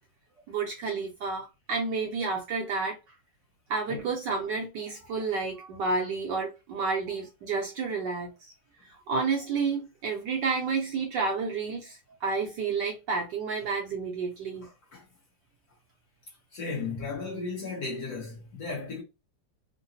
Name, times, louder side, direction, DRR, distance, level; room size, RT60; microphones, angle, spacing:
voice 1, 0.5-3.0 3.7-8.5 8.8-14.7, right 4 dB, 70° right, 1.1 m, -30 dB
voice 2, 16.5-19.0, left 4 dB, 55° left, 1.2 m, -35 dB
3.7 x 2.1 x 2.7 m
omnidirectional pair, 2.4 m